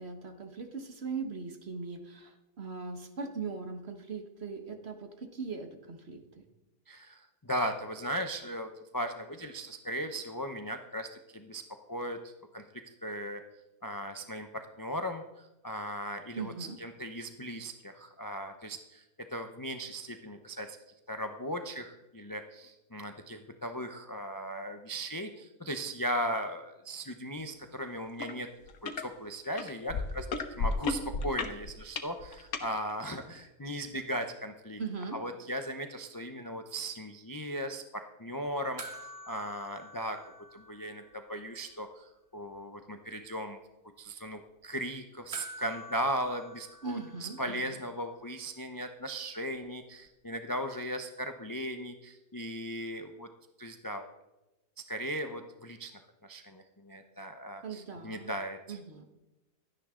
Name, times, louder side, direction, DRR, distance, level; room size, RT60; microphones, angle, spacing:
voice 1, 0.0-6.4 16.3-16.8 34.8-35.2 46.8-47.8 57.6-58.3 58.7-59.0, right 4 dB, 40° right, 6 dB, 1.6 m, -40 dB
voice 2, 6.9-11.6 11.9-13.4 13.8-19.0 19.3-20.8 21.1-28.5 28.8-30.3 30.6-34.8 35.1-40.2 40.5-43.6 44.0-53.3 53.6-54.1 54.9-55.9 56.2-58.8, equal, 25° left, 6 dB, 0.4 m, -37 dB
sound 1, 28.2-28.3 28.7-29.0 29.6-32.7 33.4-33.5, left 4 dB, 60° left, 1.6 m, -33 dB
sound 2, 38.8-41.4 41.7-41.8 45.3-47.9 50.1-50.2, equal, 25° right, 1.1 m, -48 dB
16.5 x 13.0 x 3.8 m, 1.0 s
omnidirectional pair, 1.7 m